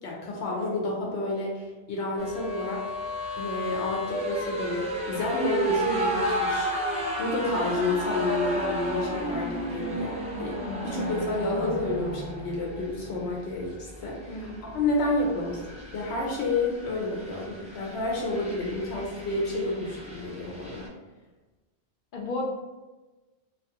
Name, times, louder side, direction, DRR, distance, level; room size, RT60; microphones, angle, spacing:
voice 1, 0.0-2.8 3.3-10.6 10.8-15.6 15.9-20.8, left 2 dB, 90° left, -2 dB, 0.9 m, -30 dB
sound 1, 2.2-20.9, equal, 10° right, 0.3 m, -33 dB
voice 2, 14.3-14.6 22.1-22.4, left 2 dB, 60° left, -2 dB, 0.6 m, -33 dB
2.3 x 2.3 x 2.7 m, 1.2 s
omnidirectional pair, 1.1 m